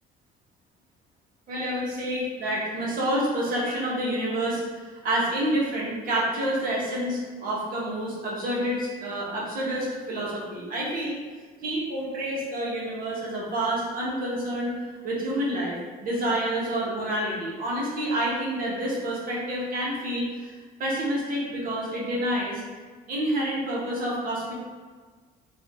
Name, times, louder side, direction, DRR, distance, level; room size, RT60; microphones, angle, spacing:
voice 1, 1.5-11.2 11.6-14.8 15.0-15.7 16.0-22.6 23.1-24.5, right 1 dB, 55° right, -5 dB, 1.3 m, -28 dB
4.4 x 2.7 x 3.6 m, 1.5 s
cardioid pair, 110°, 17 cm